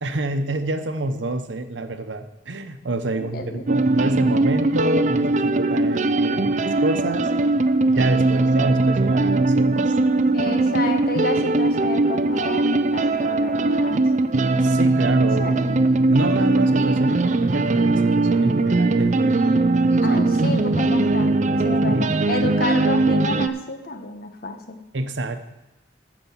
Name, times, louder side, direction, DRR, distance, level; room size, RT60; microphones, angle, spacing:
voice 1, 0.0-7.3 7.9-9.9 14.6-15.6 16.1-19.6 20.1-20.5 21.9-22.5 24.9-25.4, right 2 dB, 90° right, 9 dB, 0.9 m, -28 dB
voice 2, 3.0-3.6 10.3-14.1 15.4-15.8 20.0-21.3 21.6-24.8, left 2 dB, 55° left, 6 dB, 1.2 m, -30 dB
sound 1, 3.7-23.5, right 2 dB, 40° right, 0.5 m, -20 dB
14.0 x 5.3 x 7.2 m, 1.0 s
head